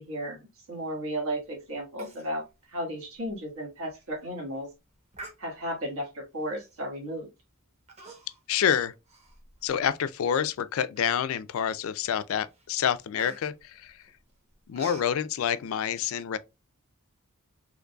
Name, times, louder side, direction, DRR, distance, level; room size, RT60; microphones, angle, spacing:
voice 1, 0.0-2.4 2.7-4.7 5.4-7.3, equal, 75° right, 1.5 m, -34 dB
Human voice, 2.0-2.3 2.6-2.7 3.2-3.3 3.9-4.2 5.1-5.9 6.6-6.8 7.9-8.5 8.9-9.9 10.4-10.5 11.0-11.5 12.0-12.2 12.5-15.1, right 3 dB, 30° right, 0.8 m, -47 dB
voice 2, 8.5-8.9 9.6-14.0 14.7-16.4, left 8 dB, 65° left, 0.3 m, -28 dB
3.8 x 3.0 x 2.2 m
head